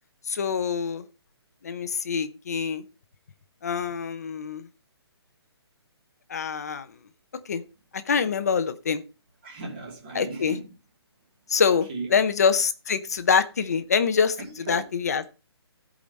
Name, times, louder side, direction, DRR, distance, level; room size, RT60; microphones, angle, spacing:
voice 1, 0.3-1.0 1.6-2.8 3.6-4.7 6.3-6.9 7.5-7.6 7.9-9.0 10.1-10.6 11.5-14.4 14.7-15.3, left 6 dB, 35° left, 0.7 m, -25 dB
voice 2, 9.4-10.7 11.9-12.2 14.4-14.9, right 3 dB, 20° right, 2.7 m, -37 dB
15.0 x 5.1 x 3.9 m
hypercardioid pair, 175°, 14 cm